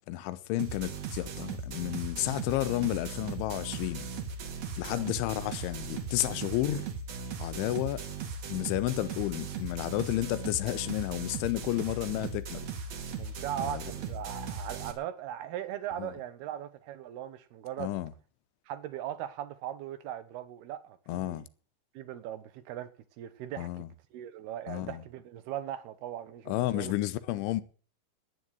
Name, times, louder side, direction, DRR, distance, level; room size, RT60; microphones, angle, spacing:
voice 1, 0.1-4.1 4.8-6.9 7.4-8.0 8.5-12.7 13.6-13.8 16.0-16.1 17.8-18.1 21.1-21.5 23.6-23.9 24.7-25.0 26.5-27.6, left 16 dB, 85° left, 3.3 m, -31 dB
sound 1, 0.6-14.9, right 5 dB, 50° right, 2.2 m, -38 dB
voice 2, 13.2-17.9 18.7-21.4 21.9-22.9 23.2-23.8 24.1-26.9, right 11 dB, 70° right, 2.8 m, -39 dB
11.5 x 9.4 x 9.3 m
omnidirectional pair, 5.3 m